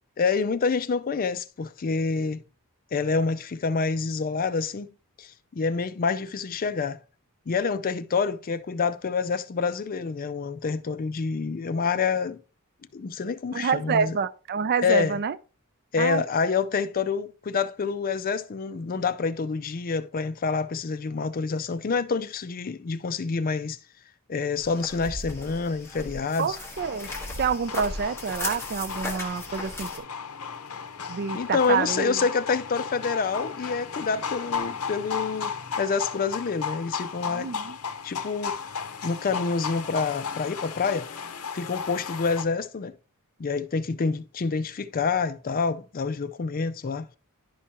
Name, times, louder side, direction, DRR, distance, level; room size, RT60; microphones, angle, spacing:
voice 1, 0.2-2.4 2.9-4.9 5.2-7.0 7.5-12.4 12.9-14.2 14.8-15.2 15.9-23.8 24.3-26.6 31.3-37.5 38.0-38.6 39.0-41.1 41.5-42.9 43.4-47.1, left 5 dB, 40° left, 0.4 m, -27 dB
voice 2, 13.5-15.4 16.0-16.2 26.4-27.1 27.4-30.0 31.1-32.2 37.3-37.8, right 6 dB, 45° right, 0.4 m, -27 dB
sound 1, 24.6-30.0, left 2 dB, 10° left, 1.3 m, -37 dB
sound 2, 26.8-42.4, left 6 dB, 75° left, 0.7 m, -35 dB
11.0 x 4.8 x 2.8 m
head